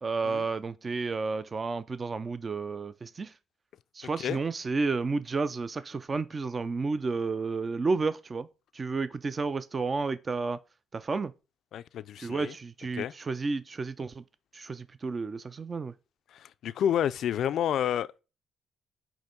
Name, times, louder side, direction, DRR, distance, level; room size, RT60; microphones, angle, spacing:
voice 1, 0.0-3.3 3.9-8.5 8.7-10.6 10.9-11.3 12.2-14.2 14.5-15.9, right 4 dB, 35° right, 0.4 m, -31 dB
voice 2, 11.7-12.6 12.9-13.1 16.3-18.2, left 10 dB, 70° left, 0.3 m, -30 dB
6.2 x 3.0 x 5.1 m
cardioid pair, 90°, 0 cm